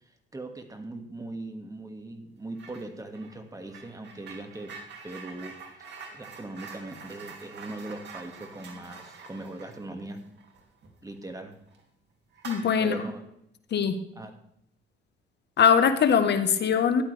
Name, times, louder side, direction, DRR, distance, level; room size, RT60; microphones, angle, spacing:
voice 1, 0.0-4.8 5.0-5.6 6.1-10.3 11.0-11.6 12.8-13.2 14.2-14.3, right 2 dB, 15° right, 5 dB, 1.9 m, -40 dB
sound 1, 2.5-2.9 3.1-11.3 11.7-11.8 12.3-13.2, right 4 dB, 60° right, 2.6 m, -46 dB
voice 2, 12.4-13.0 13.7-14.0 15.6-17.0, left 7 dB, 60° left, 9 dB, 1.2 m, -21 dB
13.5 x 11.5 x 3.4 m, 0.76 s
cardioid pair, 90°, 20 cm